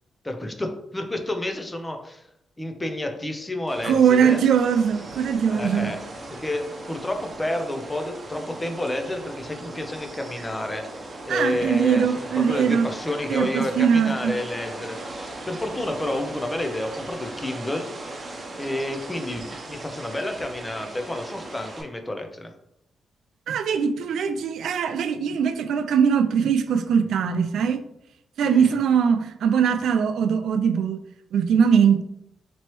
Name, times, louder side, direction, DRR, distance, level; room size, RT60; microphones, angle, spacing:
voice 1, 0.2-2.3 2.6-4.4 5.5-6.0 6.3-17.9 18.6-22.5 28.4-28.8, left 1 dB, 15° left, 5 dB, 0.6 m, -30 dB
sound 1, 3.7-21.8, right 2 dB, 35° right, 0.9 m, -38 dB
voice 2, 3.8-5.9 11.3-12.9 13.3-14.4 23.5-27.8 28.4-31.0 31.3-32.0, right 7 dB, 80° right, 10 dB, 0.4 m, -21 dB
4.3 x 3.0 x 3.0 m, 0.77 s
cardioid pair, 105°, 0 cm